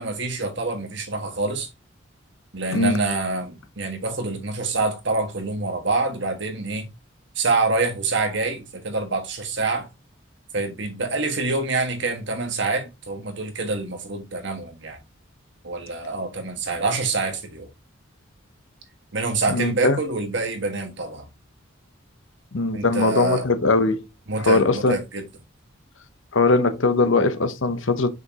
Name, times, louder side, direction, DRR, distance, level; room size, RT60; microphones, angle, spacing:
voice 1, 0.0-1.7 2.5-6.9 7.3-9.9 10.5-15.0 15.6-17.7 19.1-21.3 22.7-23.4 24.3-25.2, right 3 dB, 60° right, 1.7 m, -26 dB
voice 2, 19.5-20.0 22.5-24.0 24.4-25.0 26.3-28.1, left 3 dB, 70° left, 0.9 m, -20 dB
6.3 x 5.2 x 2.9 m
head